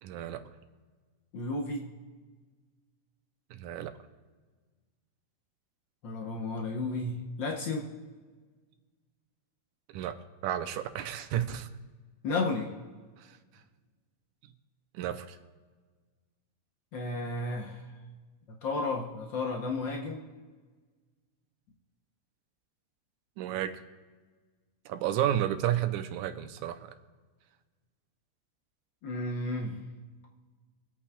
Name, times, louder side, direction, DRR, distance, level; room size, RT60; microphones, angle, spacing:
voice 1, 0.0-0.4 3.5-3.9 9.9-11.7 13.2-13.4 14.9-15.4 23.4-23.8 24.9-26.9, right 11 dB, 80° right, 9 dB, 2.0 m, -32 dB
voice 2, 1.3-1.9 6.0-7.9 12.2-12.7 16.9-17.8 18.5-20.2 29.0-29.8, left 3 dB, 85° left, 1 dB, 1.0 m, -33 dB
24.0 x 8.5 x 2.3 m, 1.4 s
omnidirectional pair, 3.5 m